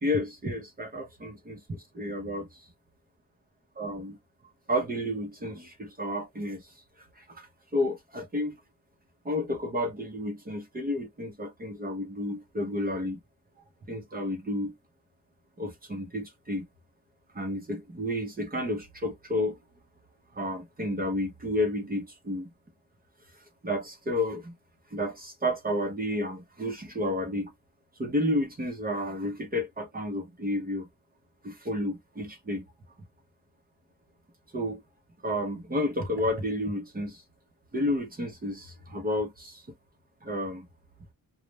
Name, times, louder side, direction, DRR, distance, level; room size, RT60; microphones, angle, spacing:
voice 1, 0.0-2.5 3.8-4.2 4.7-6.6 7.3-7.5 7.7-8.6 9.2-13.2 13.9-14.7 15.6-16.6 17.3-19.6 20.3-22.5 23.6-24.5 24.9-27.5 28.0-30.9 31.4-32.6 34.5-34.8 35.2-37.2 37.7-39.6 40.2-40.7, left 1 dB, 25° right, 0.7 m, -31 dB
2.3 x 2.0 x 3.0 m
wide cardioid pair, 130°, 33 cm